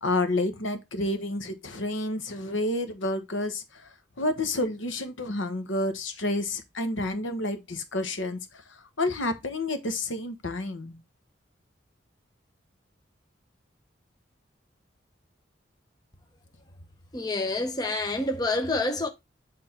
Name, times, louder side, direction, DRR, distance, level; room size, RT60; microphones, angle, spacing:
voice 1, 0.0-3.9 4.2-8.5 9.0-11.0, left 2 dB, 90° left, 1.1 m, -29 dB
voice 2, 17.1-19.1, left 2 dB, 20° left, 0.7 m, -27 dB
8.0 x 3.6 x 4.3 m
head